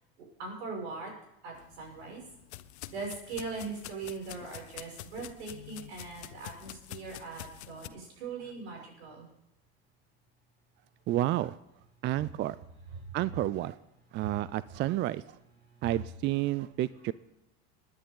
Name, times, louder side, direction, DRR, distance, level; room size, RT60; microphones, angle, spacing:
voice 1, 0.4-1.1 1.4-2.2 2.9-9.3 14.2-14.4, right 4 dB, 80° right, 0 dB, 6.6 m, -40 dB
sound 1, 1.5-7.9, left 14 dB, 85° left, 0.8 m, -47 dB
voice 2, 11.1-11.5 12.0-12.6 13.1-13.8 14.1-15.4 15.8-17.1, right 15 dB, 35° right, 18 dB, 0.4 m, -30 dB
20.5 x 10.5 x 3.9 m, 0.88 s
supercardioid pair, 105°, 33 cm